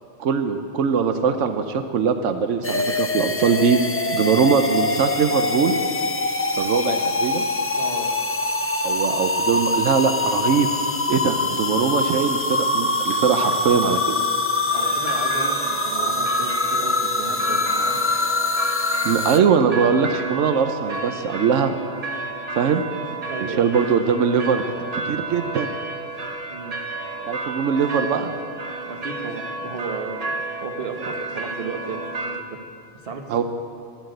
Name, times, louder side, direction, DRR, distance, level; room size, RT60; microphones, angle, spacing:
voice 1, 0.2-3.8 4.1-5.8 6.6-7.5 8.8-10.7 11.1-14.0 19.0-21.7 22.6-22.8 23.6-24.7 24.9-25.7 27.3-28.3 33.3-33.4, right 6 dB, 85° right, 8 dB, 1.1 m, -21 dB
sound 1, 2.6-19.4, left 2 dB, 20° left, 0.3 m, -23 dB
voice 2, 7.7-8.1 14.7-18.1 23.3-23.7 26.5-26.8 28.9-30.3 30.6-32.6 33.0-33.4, right 4 dB, 55° right, 4 dB, 1.4 m, -34 dB
sound 2, 14.7-32.4, right 3 dB, 35° right, 0.9 m, -32 dB
13.5 x 11.0 x 7.8 m, 2.3 s
omnidirectional pair, 1.2 m